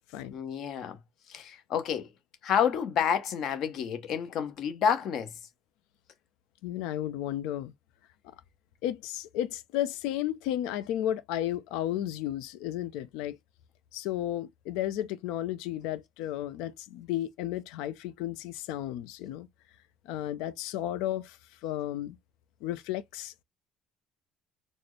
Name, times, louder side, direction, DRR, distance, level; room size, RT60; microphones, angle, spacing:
voice 1, 0.3-1.0 1.3-2.1 2.4-5.3, left 8 dB, 45° left, 0.8 m, -29 dB
voice 2, 6.6-7.7 8.8-13.4 13.9-19.5 20.0-21.4 21.6-22.2 22.6-23.4, left 12 dB, 75° left, 0.5 m, -33 dB
4.2 x 2.0 x 3.1 m
cardioid pair, 155°, 0 cm